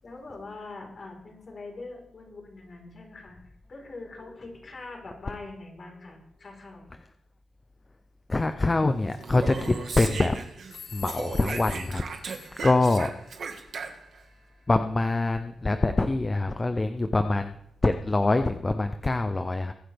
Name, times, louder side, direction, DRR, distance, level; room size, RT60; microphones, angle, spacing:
voice 1, 0.0-6.9, left 3 dB, 35° left, 0 dB, 4.2 m, -43 dB
voice 2, 8.3-10.4 10.9-12.0 12.6-13.1 14.7-19.7, left 2 dB, 20° left, 8 dB, 0.6 m, -24 dB
Speech, 9.1-10.8 11.1-14.2, right 5 dB, 55° right, 1.6 m, -37 dB
sound 1, 9.6-10.2 10.7-12.9, left 5 dB, 65° left, 3.6 m, -45 dB
23.0 x 10.0 x 3.5 m, 0.76 s
wide cardioid pair, 175°, 0 cm